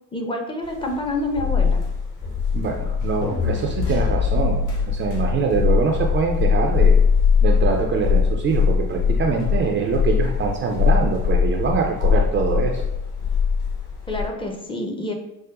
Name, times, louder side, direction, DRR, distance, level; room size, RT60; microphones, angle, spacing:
voice 1, 0.1-1.8 14.1-15.1, left 1 dB, 10° left, 2 dB, 0.6 m, -27 dB
sound 1, 0.8-14.3, left 6 dB, 45° left, 1.2 m, -21 dB
voice 2, 2.5-4.6 4.9-6.9 7.4-12.8, right 5 dB, 25° right, 1 dB, 0.4 m, -24 dB
sound 2, 3.2-5.0, left 5 dB, 75° left, 0.8 m, -25 dB
6.1 x 2.2 x 2.4 m, 0.87 s
figure-of-eight pair, 55°, 44 cm